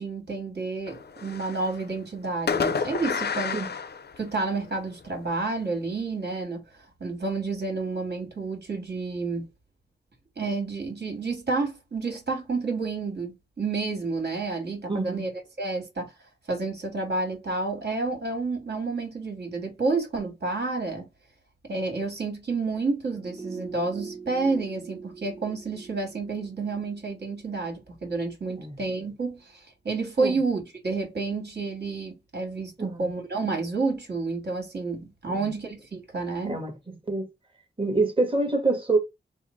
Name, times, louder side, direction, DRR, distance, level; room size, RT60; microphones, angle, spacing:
voice 1, 0.0-3.6 4.2-9.5 10.4-15.3 15.6-16.1 16.5-21.1 21.6-36.6, right 3 dB, 60° right, 1.9 m, -30 dB
Fireworks, 0.9-1.9 2.5-4.7, left 5 dB, 60° left, 0.5 m, -30 dB
voice 2, 14.9-15.3 28.6-28.8 30.2-30.4 32.8-33.1 35.3-35.5 36.4-36.7 37.1-37.3 37.8-39.0, right 3 dB, 25° right, 1.4 m, -26 dB
sound 1, 23.0-28.2 28.5-28.6, right 4 dB, 10° right, 1.1 m, -43 dB
3.6 x 2.0 x 4.3 m
wide cardioid pair, 80°, 19 cm